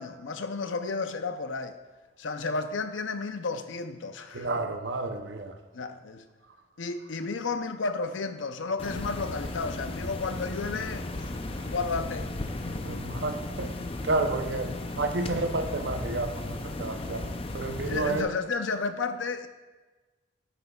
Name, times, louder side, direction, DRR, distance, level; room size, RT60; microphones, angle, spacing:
voice 1, 0.0-1.8 2.2-4.5 5.7-6.2 6.8-12.3 12.6-12.8 17.9-19.5, left 4 dB, 80° left, 8 dB, 0.6 m, -32 dB
voice 2, 4.3-5.6 12.8-13.7 14.0-17.3 17.5-18.3, right 2 dB, 65° right, 6 dB, 0.7 m, -31 dB
sound 1, 8.8-18.2, left 2 dB, 30° left, 0.5 m, -35 dB
10.0 x 8.7 x 2.4 m, 1.2 s
head